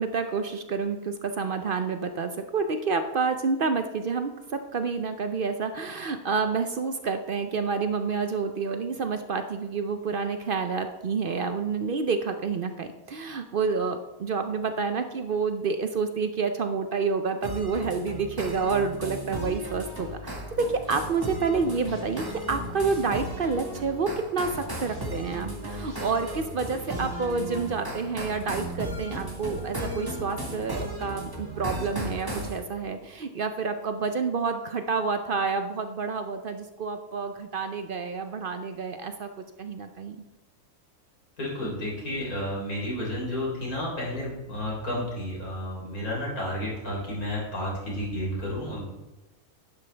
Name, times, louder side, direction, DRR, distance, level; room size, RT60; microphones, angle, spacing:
voice 1, 0.0-20.2 20.6-39.3 39.6-40.2, right 4 dB, 60° right, 8 dB, 0.6 m, -29 dB
sound 1, 17.4-32.6, right 1 dB, 15° right, 1.6 m, -35 dB
sound 2, 20.0-28.0, right 1 dB, 75° right, 3.4 m, -48 dB
voice 2, 41.4-48.8, left 1 dB, 75° left, -4 dB, 4.2 m, -31 dB
11.0 x 10.0 x 3.3 m, 1.1 s
omnidirectional pair, 1.6 m